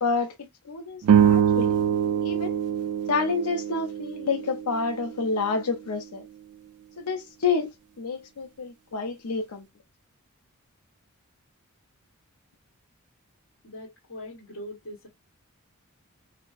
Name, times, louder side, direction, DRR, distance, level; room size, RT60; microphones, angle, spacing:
voice 1, 0.0-1.7 2.2-2.5 3.1-6.2 7.0-7.7 8.0-9.6, left 4 dB, 85° left, 0.6 m, -28 dB
sound 1, 1.0-5.6, right 8 dB, 75° right, 0.4 m, -24 dB
voice 2, 13.6-15.1, left 1 dB, 70° left, 1.3 m, -41 dB
4.2 x 2.0 x 2.4 m
head